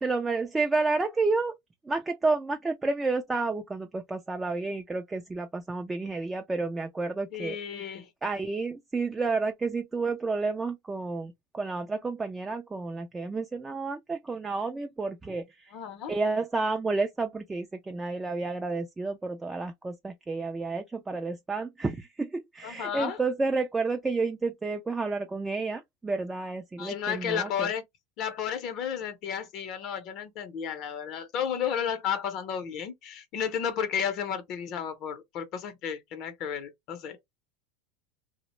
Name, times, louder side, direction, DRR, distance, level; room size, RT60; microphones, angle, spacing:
voice 1, 0.0-1.6 1.8-7.9 8.2-15.7 16.1-27.7, right 3 dB, 15° right, 0.3 m, -30 dB
voice 2, 7.3-8.1 15.7-16.1 22.6-23.2 26.8-27.8 28.2-37.2, left 8 dB, 50° left, 0.6 m, -32 dB
2.4 x 2.0 x 2.9 m
supercardioid pair, 120°, 0 cm